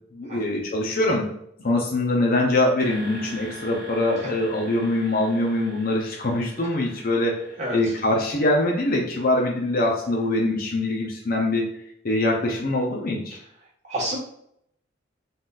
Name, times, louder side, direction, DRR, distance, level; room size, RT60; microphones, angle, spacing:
voice 1, 0.1-1.2 1.6-7.4 7.7-11.7 12.0-13.4, left 1 dB, 50° left, -2 dB, 0.7 m, -23 dB
sound 1, 2.8-10.6, right 1 dB, 50° right, 1.2 m, -44 dB
voice 2, 7.6-7.9 13.9-14.2, right 1 dB, 35° right, -4 dB, 1.6 m, -28 dB
3.9 x 3.9 x 2.5 m, 0.71 s
head